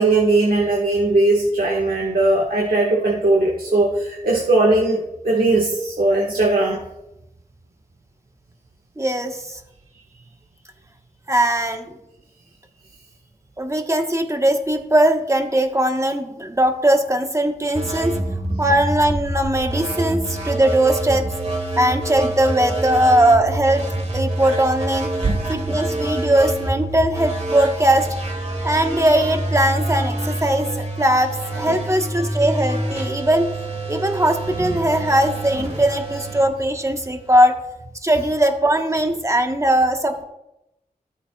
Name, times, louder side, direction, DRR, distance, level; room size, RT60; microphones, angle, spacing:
voice 1, 0.0-6.8 19.5-19.7 25.2-25.4 31.7-31.8 34.4-34.9 38.1-38.3, right 2 dB, 70° right, -3 dB, 1.6 m, -19 dB
voice 2, 9.0-9.6 11.3-11.9 13.6-18.2 18.6-21.3 21.8-23.8 24.1-25.1 25.5-28.1 28.6-31.3 31.6-33.5 33.9-37.6 38.0-40.2, right 1 dB, 20° right, 4 dB, 1.2 m, -19 dB
sound 1, 17.7-37.3, right 1 dB, 45° right, 2.0 m, -27 dB
13.0 x 8.5 x 2.3 m, 0.88 s
cardioid pair, 45°, 15 cm